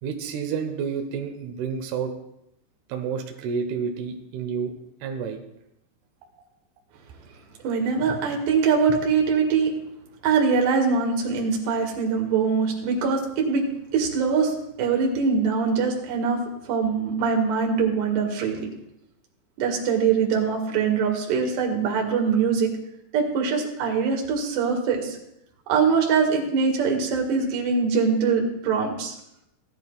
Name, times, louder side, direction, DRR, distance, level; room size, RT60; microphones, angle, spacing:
voice 1, 0.0-2.1 2.9-4.7 5.0-5.4, right 6 dB, 85° right, 4 dB, 2.2 m, -29 dB
voice 2, 7.6-9.7 10.2-16.4 16.7-18.7 19.6-22.7 23.1-25.2 25.7-29.1, right 5 dB, 65° right, 0 dB, 3.5 m, -23 dB
18.0 x 11.5 x 2.3 m, 0.81 s
omnidirectional pair, 5.9 m